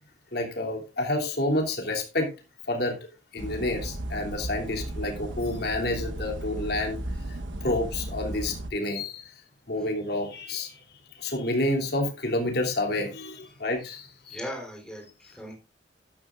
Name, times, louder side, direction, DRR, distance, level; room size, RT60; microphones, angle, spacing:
voice 1, 0.3-2.3 2.7-3.0 3.3-7.0 7.3-9.3 9.7-10.8 11.2-14.4 15.3-15.4, left 1 dB, 60° left, 1 dB, 3.0 m, -29 dB
sound 1, 3.4-8.7, right 1 dB, 85° right, 1.2 m, -35 dB
voice 2, 14.3-15.6, equal, 5° left, 0 dB, 3.8 m, -38 dB
12.5 x 12.0 x 2.5 m, 0.29 s
head